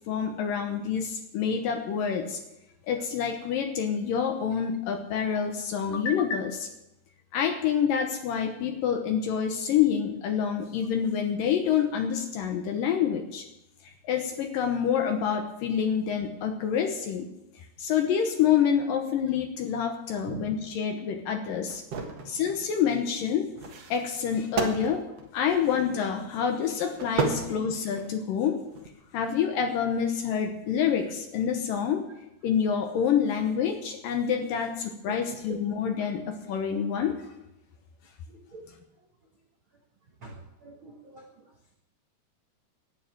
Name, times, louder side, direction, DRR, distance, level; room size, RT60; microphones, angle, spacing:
voice 1, 0.1-2.4 2.9-6.7 7.3-13.5 13.8-17.3 17.6-21.8 22.3-23.5 23.9-25.0 25.3-28.6 29.1-32.1 32.4-37.3, left 8 dB, 70° left, 6 dB, 2.3 m, -27 dB
sound 1, 21.7-22.3 23.6-26.0 26.9-28.1 28.7-28.9, right 5 dB, 55° right, 1.9 m, -32 dB
voice 2, 22.0-22.5 27.3-27.4 31.5-31.7 35.1-35.4 38.3-38.6 40.2-40.3 40.6-41.2, right 4 dB, 75° right, 0 dB, 1.1 m, -43 dB
11.5 x 9.4 x 9.0 m, 0.90 s
omnidirectional pair, 4.8 m